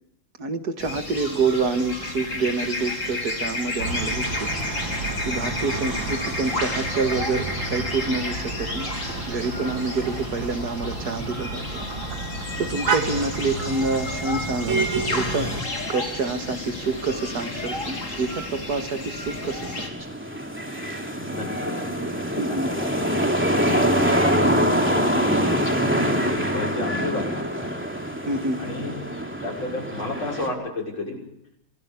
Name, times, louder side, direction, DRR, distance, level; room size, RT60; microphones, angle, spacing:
voice 1, 0.4-4.5 5.3-8.9 9.3-11.8 12.6-15.5 15.9-19.9 22.4-22.7 23.6-24.0 28.3-28.6, right 3 dB, 55° right, 7 dB, 2.1 m, -27 dB
sound 1, 0.8-19.9, left 2 dB, 40° left, 3.8 m, -32 dB
sound 2, 3.8-15.6, right 4 dB, 70° right, 2.9 m, -31 dB
sound 3, 15.4-30.5, equal, 5° right, 3.0 m, -26 dB
voice 2, 21.1-23.1 23.6-25.5 26.0-27.7 28.2-28.9 29.4-31.2, left 2 dB, 85° left, -1 dB, 7.3 m, -33 dB
27.5 x 19.0 x 6.9 m, 0.75 s
omnidirectional pair, 2.1 m